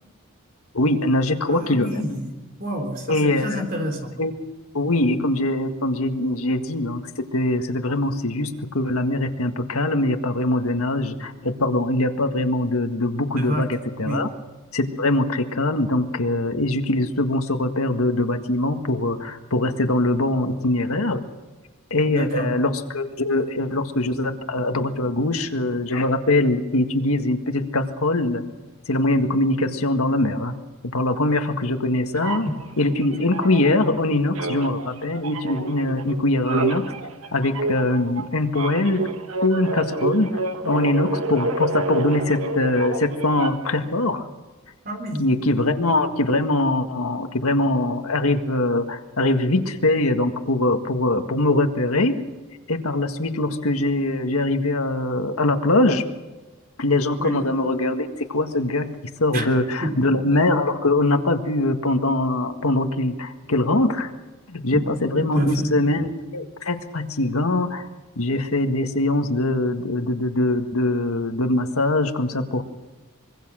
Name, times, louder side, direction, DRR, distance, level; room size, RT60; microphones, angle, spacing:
voice 1, 0.7-2.0 3.1-3.5 4.2-4.3 4.7-14.3 14.7-21.2 21.9-28.4 28.9-30.5 30.9-32.5 32.8-36.8 37.3-39.1 39.4-44.3 45.2-52.2 52.7-56.0 56.8-58.9 59.2-64.1 64.5-67.9 68.2-72.6, left 2 dB, 85° left, 6 dB, 1.8 m, -22 dB
voice 2, 1.5-2.3 2.6-4.1 13.3-13.7 14.0-14.2 22.1-22.5 44.8-45.3 57.2-57.3 59.3-59.5 59.8-60.1 64.7-64.8 65.2-65.7, equal, 40° right, 3 dB, 3.8 m, -28 dB
sound 1, 32.2-34.0 34.3-43.8, right 2 dB, 80° right, 1.5 m, -29 dB
25.0 x 22.5 x 6.3 m, 1.2 s
head